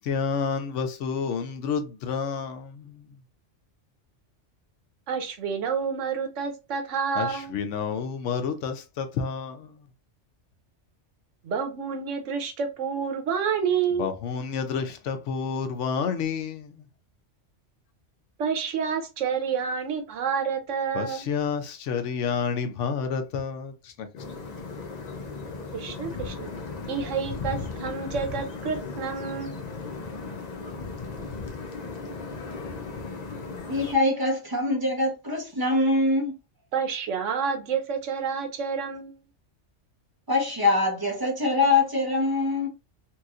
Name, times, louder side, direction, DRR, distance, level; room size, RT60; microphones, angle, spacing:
voice 1, 0.1-2.9 7.2-9.7 14.0-16.7 20.9-23.7 24.0-24.1, left 6 dB, 80° left, 0.9 m, -29 dB
voice 2, 5.1-7.5 11.4-14.1 18.4-21.3 25.7-26.5 26.9-29.6 36.7-39.2, right 6 dB, 85° right, 1.1 m, -29 dB
sound 1, 24.2-33.9, left 4 dB, 45° left, 0.6 m, -36 dB
voice 3, 33.7-36.3 40.3-42.7, left 2 dB, 20° right, 0.8 m, -23 dB
3.0 x 2.9 x 2.4 m
omnidirectional pair, 1.2 m